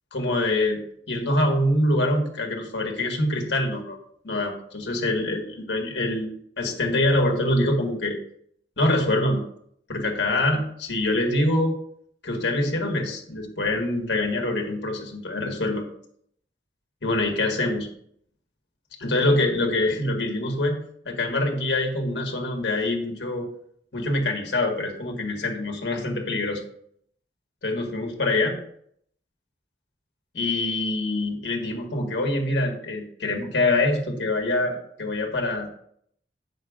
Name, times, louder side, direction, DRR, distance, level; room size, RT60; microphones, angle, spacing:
voice 1, 0.1-4.0 4.2-8.2 8.8-9.4 9.9-11.7 12.2-15.9 17.0-17.9 19.0-20.8 21.1-23.5 23.9-26.6 27.6-28.6 30.3-35.7, left 2 dB, 80° left, 1 dB, 1.8 m, -25 dB
8.5 x 6.3 x 3.7 m, 0.67 s
head